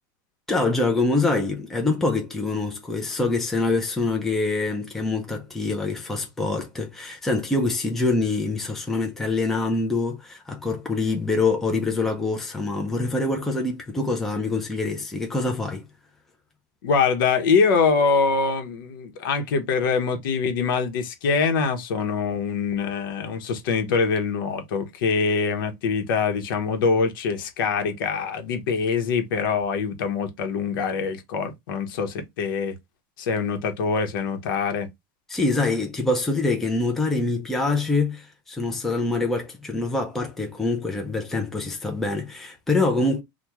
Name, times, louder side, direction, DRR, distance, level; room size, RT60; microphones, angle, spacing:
voice 1, 0.5-15.8 35.3-43.2, left 3 dB, 5° left, 0.4 m, -25 dB
voice 2, 16.8-32.8 33.2-34.9, left 5 dB, 85° left, 0.8 m, -24 dB
3.0 x 2.2 x 3.4 m
supercardioid pair, 170°, 11 cm